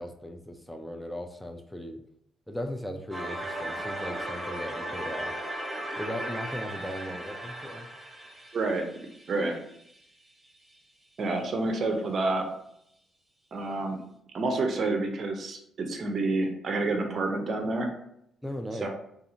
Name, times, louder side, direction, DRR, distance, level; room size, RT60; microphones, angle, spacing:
voice 1, 0.0-2.0 2.5-5.3 6.0-7.9 8.2-8.4 18.4-18.9, equal, 5° left, 5 dB, 0.3 m, -38 dB
sound 1, 3.1-10.0, right 1 dB, 10° right, 0.8 m, -37 dB
voice 2, 8.5-8.8 9.3-9.5 11.2-12.4 13.5-14.0 14.3-17.9 18.8-18.9, right 2 dB, 50° right, 3 dB, 0.6 m, -28 dB
2.6 x 2.4 x 2.7 m, 0.74 s
cardioid pair, 90°, 0 cm